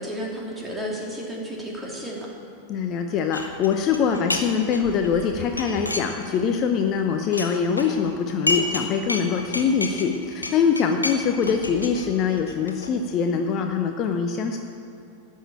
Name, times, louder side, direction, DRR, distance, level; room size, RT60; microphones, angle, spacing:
voice 1, 0.0-2.3, equal, 10° right, -2 dB, 2.9 m, -32 dB
voice 2, 2.7-14.6, left 6 dB, 35° left, 5 dB, 0.8 m, -23 dB
sound 1, 3.3-4.5 4.7-6.5 6.8-8.8 9.1-12.9, left 2 dB, 80° left, 1.1 m, -30 dB
13.0 x 6.5 x 9.1 m, 2.8 s
figure-of-eight pair, 90°, 0 cm